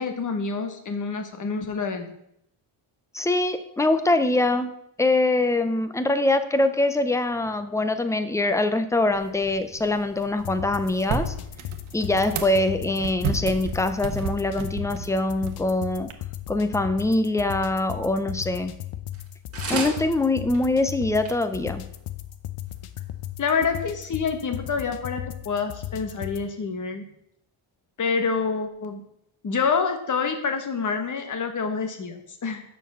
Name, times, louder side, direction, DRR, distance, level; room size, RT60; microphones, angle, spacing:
voice 1, 0.0-2.1 23.4-27.1 28.0-29.0 29.4-32.6, left 5 dB, 40° left, 7 dB, 1.2 m, -27 dB
voice 2, 3.1-4.7 5.0-11.3 11.9-16.1 16.5-18.7 19.7-21.8, left 2 dB, 5° left, 10 dB, 0.4 m, -23 dB
sound 1, 9.1-16.1, right 6 dB, 75° right, 1.1 m, -34 dB
sound 2, 10.4-26.5, left 13 dB, 85° left, 0.8 m, -37 dB
sound 3, 19.1-19.3 19.5-20.0 20.5-20.6 20.9-21.0 21.2-21.3 21.9-22.0, right 4 dB, 30° right, 1.7 m, -30 dB
7.0 x 6.0 x 7.2 m, 0.75 s
wide cardioid pair, 175°, 49 cm